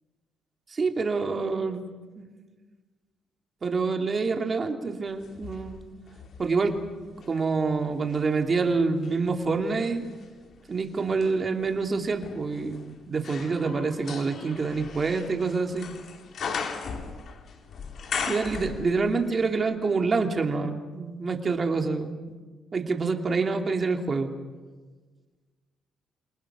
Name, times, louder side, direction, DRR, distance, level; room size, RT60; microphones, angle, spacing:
voice 1, 0.7-1.8 2.2-2.3 3.6-5.8 6.4-6.7 7.3-10.1 10.7-15.9 18.3-22.1 22.7-24.3, right 4 dB, 35° right, 4 dB, 3.0 m, -27 dB
sound 1, 5.2-7.4 7.9-19.3 19.5-19.6, left 5 dB, 60° left, 3.3 m, -38 dB
28.5 x 27.5 x 6.3 m, 1.4 s
cardioid pair, 90°, 0 cm